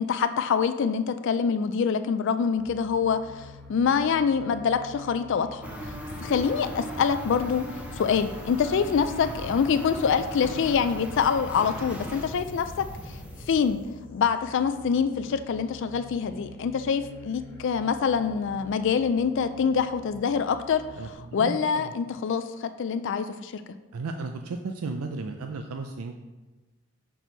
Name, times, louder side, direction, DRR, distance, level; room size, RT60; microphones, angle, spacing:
voice 1, 0.0-5.7 6.2-13.2 13.5-13.8 14.1-21.0 21.3-23.6, left 6 dB, 55° left, 10 dB, 0.3 m, -25 dB
sound 1, 2.6-21.1, left 2 dB, 10° left, 1.1 m, -47 dB
sound 2, 5.6-13.9, equal, 5° right, 0.7 m, -38 dB
voice 2, 21.0-21.9 23.9-26.2, right 3 dB, 80° right, 5 dB, 0.4 m, -34 dB
6.2 x 6.1 x 3.9 m, 1.2 s
head